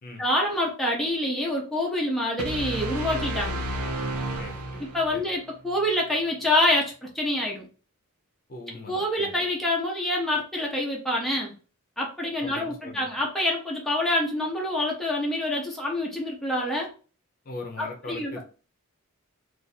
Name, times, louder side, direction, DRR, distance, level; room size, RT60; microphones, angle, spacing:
voice 1, 0.2-3.6 4.9-7.6 8.9-11.5 12.0-16.9 17.8-18.4, left 1 dB, ahead, -3 dB, 0.7 m, -26 dB
sound 1, 2.4-5.3, right 1 dB, 75° right, 0.6 m, -31 dB
voice 2, 4.4-4.9 5.1-5.2 8.5-9.3 12.4-13.1 17.4-18.4, left 2 dB, 40° left, 1 dB, 0.7 m, -40 dB
2.6 x 2.6 x 4.0 m, 0.37 s
head